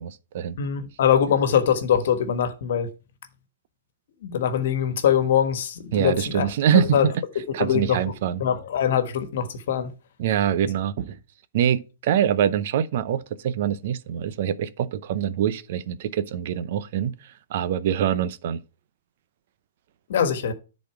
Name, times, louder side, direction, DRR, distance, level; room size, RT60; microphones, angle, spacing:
voice 1, 0.0-0.6 5.9-7.1 7.5-8.4 10.2-11.2 11.5-17.2 17.5-18.6, right 9 dB, 55° right, 0.7 m, -24 dB
voice 2, 0.6-2.9 4.2-6.5 6.7-7.1 7.6-8.0 8.4-9.9 20.1-20.5, left 8 dB, 65° left, 1.4 m, -22 dB
10.5 x 4.3 x 4.8 m
hypercardioid pair, 130°, 0 cm